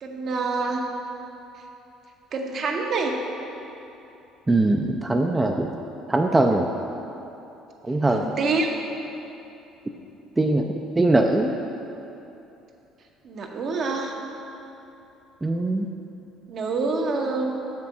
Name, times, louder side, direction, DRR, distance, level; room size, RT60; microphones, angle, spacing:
voice 1, 0.0-0.8 2.3-3.2 8.1-8.8 13.2-14.1 16.5-17.6, right 3 dB, 55° right, 1 dB, 0.9 m, -26 dB
voice 2, 4.5-5.8 6.1-6.7 7.8-8.2 10.4-10.7 11.0-11.5 15.4-15.9, right 2 dB, 15° right, 3 dB, 0.4 m, -21 dB
7.3 x 3.5 x 6.1 m, 2.9 s
hypercardioid pair, 70°, 0 cm